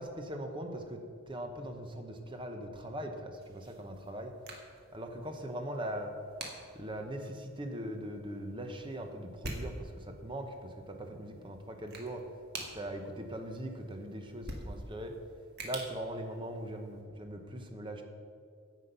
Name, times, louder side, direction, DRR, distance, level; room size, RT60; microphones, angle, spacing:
voice 1, 0.0-4.3 4.9-6.1 6.7-12.2 12.7-15.1 15.6-18.0, right 1 dB, 25° right, 4 dB, 0.9 m, -40 dB
sound 1, 3.3-17.0, right 2 dB, 50° right, 1.5 m, -48 dB
9.9 x 7.3 x 5.4 m, 2.3 s
head